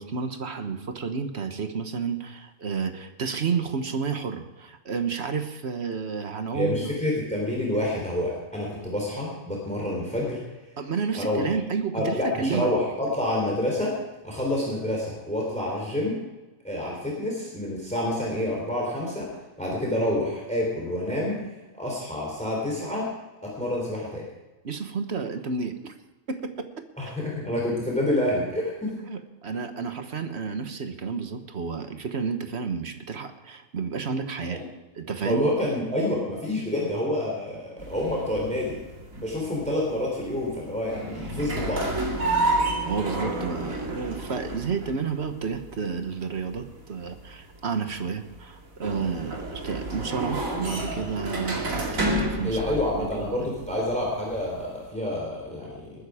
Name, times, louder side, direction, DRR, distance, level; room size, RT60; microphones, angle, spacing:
voice 1, 0.0-6.8 10.8-12.7 24.6-25.9 26.3-26.8 29.1-34.6 34.9-35.5 42.9-52.7 53.0-53.5, right 5 dB, 55° right, 8 dB, 1.4 m, -31 dB
voice 2, 6.5-10.4 11.1-11.4 11.9-13.9 14.2-16.2 16.6-19.3 19.6-21.4 21.8-23.1 23.4-24.2 27.0-28.9 34.5-34.6 35.2-38.7 39.1-41.8 52.4-55.9, left 1 dB, 5° left, -2 dB, 3.4 m, -28 dB
sound 1, 37.8-54.9, right 2 dB, 75° right, 2.8 m, -31 dB
20.5 x 10.0 x 4.9 m, 1.1 s
omnidirectional pair, 1.4 m